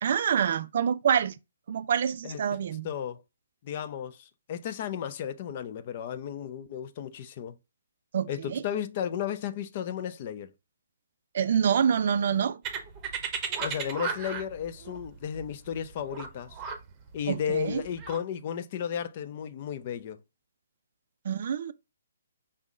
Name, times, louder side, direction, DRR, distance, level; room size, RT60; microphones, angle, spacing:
voice 1, 0.0-1.4 1.7-2.9 8.1-8.6 11.3-12.6 17.3-17.8 21.2-21.7, right 8 dB, 45° right, 0.4 m, -26 dB
voice 2, 2.8-3.2 3.6-7.6 8.3-10.5 13.6-16.6 17.1-20.2, left 8 dB, 35° left, 0.5 m, -34 dB
sound 1, 12.6-18.2, right 6 dB, 20° right, 0.9 m, -35 dB
5.3 x 3.5 x 2.5 m
figure-of-eight pair, 135°, 0 cm